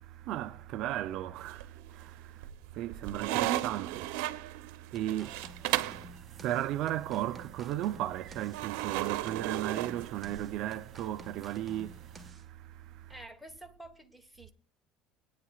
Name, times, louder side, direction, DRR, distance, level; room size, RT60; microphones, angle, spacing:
voice 1, 0.0-13.1, right 13 dB, 50° right, 0.5 m, -36 dB
sound 1, 1.4-2.0 2.4-6.1 8.5-10.6, right 15 dB, 85° right, 0.8 m, -34 dB
sound 2, 5.0-12.5, right 1 dB, 15° right, 1.4 m, -52 dB
sound 3, 5.2-12.3, right 7 dB, 35° right, 2.4 m, -57 dB
voice 2, 13.1-14.5, right 1 dB, ahead, 1.2 m, -49 dB
21.5 x 9.5 x 2.4 m
cardioid pair, 155°, 0 cm